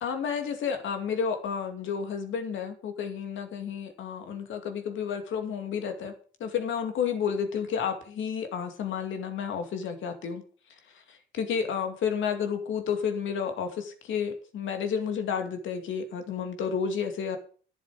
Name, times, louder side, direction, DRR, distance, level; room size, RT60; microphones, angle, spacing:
voice 1, 0.0-10.4 11.1-17.4, left 7 dB, 75° left, 7 dB, 2.3 m, -31 dB
11.5 x 7.2 x 6.5 m, 0.42 s
cardioid pair, 90°, 20 cm